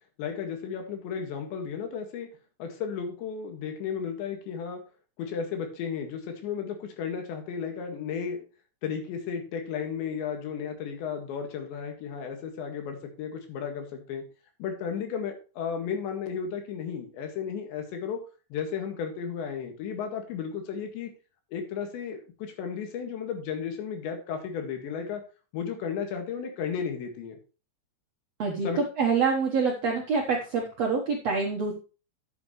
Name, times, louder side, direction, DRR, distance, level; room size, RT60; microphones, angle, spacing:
voice 1, 0.2-2.3 2.6-4.8 5.2-8.4 8.8-14.2 14.6-18.2 18.5-21.1 21.5-25.2 25.5-27.4 28.6-28.8, left 7 dB, 85° left, 4 dB, 4.1 m, -34 dB
voice 2, 29.0-31.7, right 5 dB, 70° right, 0 dB, 1.5 m, -26 dB
12.0 x 8.3 x 3.2 m, 0.34 s
omnidirectional pair, 5.0 m